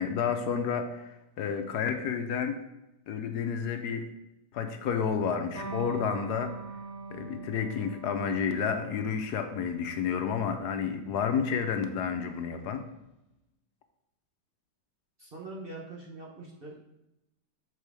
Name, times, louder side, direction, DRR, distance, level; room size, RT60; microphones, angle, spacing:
voice 1, 0.0-2.6 3.1-4.1 4.5-6.5 7.1-12.8, left 6 dB, 70° left, 7 dB, 1.1 m, -30 dB
Electric guitar, 5.5-12.7, right 3 dB, 20° right, 2.1 m, -44 dB
voice 2, 15.2-16.8, right 2 dB, 40° right, -3 dB, 0.9 m, -43 dB
6.9 x 4.5 x 4.8 m, 0.91 s
omnidirectional pair, 1.9 m